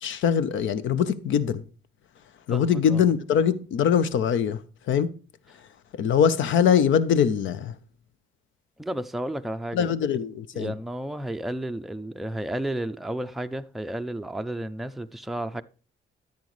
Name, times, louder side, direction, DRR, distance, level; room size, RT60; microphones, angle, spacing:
voice 1, 0.0-1.6 2.5-4.6 4.9-5.1 5.9-7.7 9.7-10.7, left 8 dB, 75° left, 0.7 m, -22 dB
voice 2, 2.5-3.0 8.8-9.9 10.5-15.6, right 1 dB, ahead, 0.4 m, -32 dB
10.5 x 8.6 x 3.2 m
cardioid pair, 90°, 20 cm